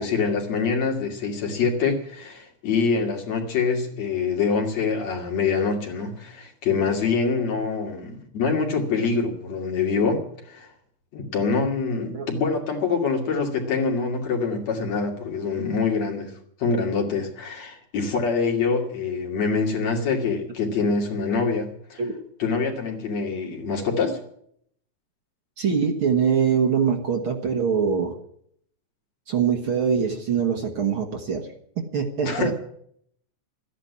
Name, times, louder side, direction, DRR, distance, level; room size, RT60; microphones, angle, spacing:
voice 1, 0.0-10.7 11.1-16.3 16.6-22.0 22.4-24.2 32.2-32.5, left 4 dB, 65° left, 1 dB, 3.7 m, -25 dB
voice 2, 25.6-28.1 29.3-31.5 31.8-32.5, right 6 dB, 50° right, 4 dB, 2.0 m, -23 dB
14.0 x 10.0 x 9.5 m, 0.67 s
omnidirectional pair, 3.4 m